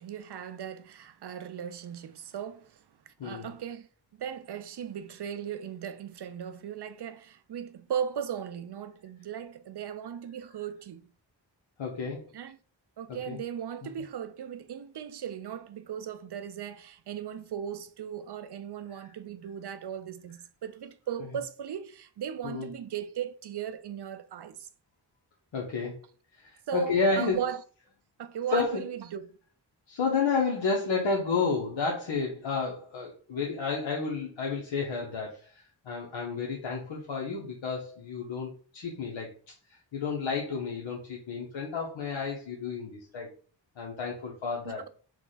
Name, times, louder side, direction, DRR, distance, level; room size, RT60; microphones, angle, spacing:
voice 1, 0.0-3.9 4.2-11.1 12.3-12.6 13.0-24.7 26.7-27.6 28.2-29.4 44.6-44.9, right 8 dB, 60° right, 0.5 m, -37 dB
voice 2, 11.8-12.3 13.3-13.4 22.4-22.7 25.5-25.9 26.4-27.4 28.5-28.9 29.9-39.3 39.9-43.3 43.8-44.9, left 4 dB, 85° left, 0.9 m, -31 dB
4.7 x 2.3 x 3.9 m
cardioid pair, 55°, 45 cm